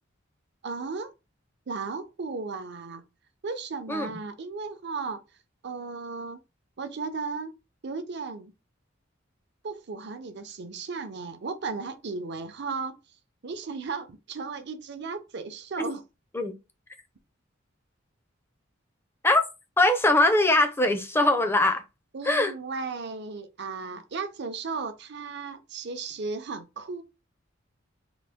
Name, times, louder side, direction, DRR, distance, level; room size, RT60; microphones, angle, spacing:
voice 1, 0.6-1.1 1.7-3.0 3.4-5.2 5.6-6.4 6.8-7.5 7.8-8.5 9.6-13.0 13.4-16.0 22.1-27.0, right 4 dB, 60° right, 0.6 m, -35 dB
voice 2, 19.8-21.8 22.2-22.5, left 2 dB, 10° left, 0.5 m, -21 dB
3.9 x 2.5 x 3.5 m
head